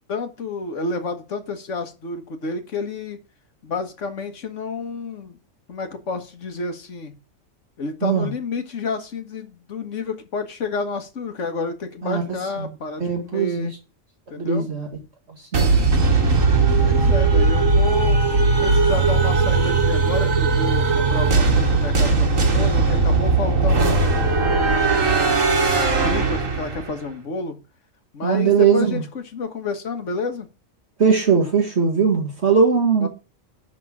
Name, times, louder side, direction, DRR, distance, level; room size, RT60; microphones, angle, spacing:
voice 1, 0.1-3.2 3.6-5.4 5.7-7.1 7.8-13.7 14.3-14.7 16.8-24.0 24.4-25.1 25.7-27.6 28.1-30.5 33.0-33.1, left 3 dB, 70° left, 7 dB, 1.7 m, -30 dB
voice 2, 13.0-13.7 14.4-14.9 15.5-15.9 28.2-29.0 31.0-33.1, right 6 dB, 55° right, 1 dB, 1.9 m, -19 dB
sound 1, 15.5-26.9, right 3 dB, 80° right, 2.1 m, -18 dB
11.0 x 3.8 x 7.2 m, 0.32 s
omnidirectional pair, 1.4 m